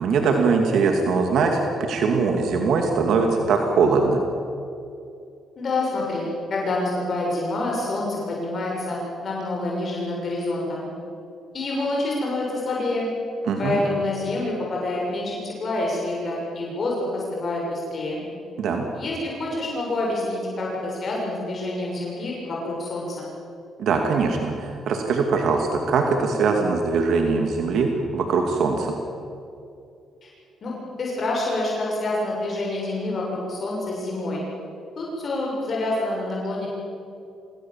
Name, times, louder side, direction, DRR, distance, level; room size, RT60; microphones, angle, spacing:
voice 1, 0.0-4.2 13.5-13.8 18.6-18.9 23.8-29.0, right 4 dB, 70° right, 3 dB, 2.7 m, -21 dB
voice 2, 5.6-10.9 11.5-13.1 13.6-18.2 18.9-23.3 30.2-30.3 30.6-34.4 35.0-36.7, left 2 dB, 45° left, -3 dB, 6.8 m, -27 dB
26.5 x 19.0 x 7.6 m, 2.5 s
cardioid pair, 90°, 0 cm